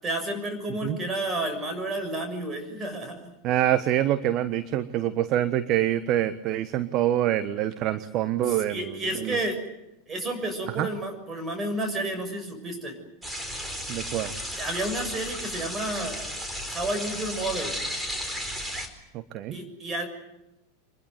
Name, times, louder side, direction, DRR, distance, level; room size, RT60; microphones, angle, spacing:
voice 1, 0.0-3.2 8.4-9.6 10.1-12.9 14.6-16.2 16.7-17.7 19.5-20.1, right 1 dB, 25° right, 6 dB, 6.6 m, -31 dB
voice 2, 3.4-9.4 10.8-10.9 13.9-14.3 19.1-19.6, right 12 dB, 45° right, 13 dB, 1.2 m, -26 dB
sound 1, 13.2-18.9, equal, 10° right, 4.4 m, -34 dB
25.0 x 21.0 x 9.5 m, 0.92 s
hypercardioid pair, 90°, 0 cm